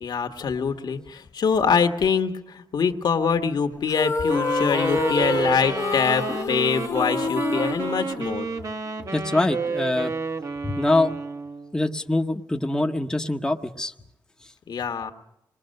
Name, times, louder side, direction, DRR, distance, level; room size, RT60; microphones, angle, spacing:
voice 1, 0.0-8.5 14.7-15.1, left 6 dB, 65° left, 7 dB, 1.6 m, -24 dB
sound 1, 3.9-8.7, left 4 dB, 40° left, 0.9 m, -28 dB
Wind instrument woodwind instrument, 4.3-11.7, right 4 dB, 45° right, 1.4 m, -30 dB
voice 2, 9.1-10.1 10.6-11.1 11.7-13.9, left 2 dB, 10° left, 3 dB, 1.0 m, -24 dB
26.0 x 21.0 x 6.6 m, 0.82 s
wide cardioid pair, 135°, 8 cm